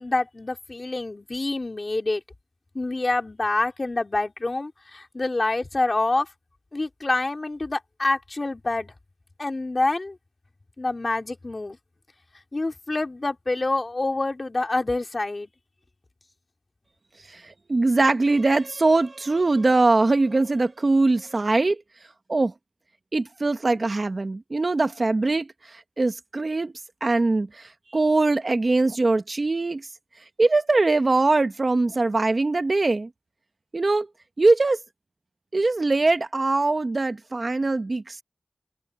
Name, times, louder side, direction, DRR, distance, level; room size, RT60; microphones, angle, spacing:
voice 1, 0.0-2.2 2.7-6.3 6.7-8.9 9.4-10.2 10.8-11.8 12.5-15.5, left 2 dB, 50° left, 3.6 m, -26 dB
voice 2, 17.3-21.8 22.3-22.5 23.1-26.7 27.0-29.9 30.4-33.1 33.7-34.1 34.4-34.8 35.5-38.2, right 3 dB, 60° right, 1.3 m, -22 dB
cardioid pair, 40°, 0 cm